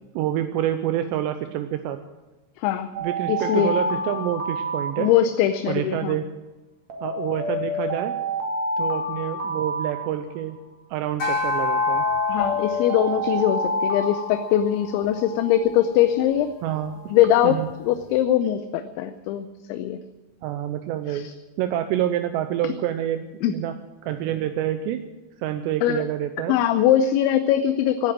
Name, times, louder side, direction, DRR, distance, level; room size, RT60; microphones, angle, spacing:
voice 1, 0.1-2.0 3.0-5.1 5.7-6.3 7.0-8.1 8.8-10.6 10.9-12.1 16.6-17.0 17.4-17.7 20.4-21.3 21.6-23.7 24.0-25.0 25.4-26.5, right 11 dB, 80° right, 8 dB, 2.7 m, -27 dB
Alarm, 2.9-5.6 6.9-10.6 11.9-15.1, equal, 45° right, 2.9 m, -29 dB
voice 2, 3.3-3.8 5.0-6.2 12.3-16.5 17.1-20.0 21.1-21.3 23.4-23.5 25.8-26.0 26.5-28.1, left 11 dB, 80° left, 9 dB, 2.9 m, -21 dB
sound 1, 11.2-15.8, left 3 dB, 60° left, 1.6 m, -28 dB
18.0 x 9.8 x 7.5 m, 1.1 s
omnidirectional pair, 5.6 m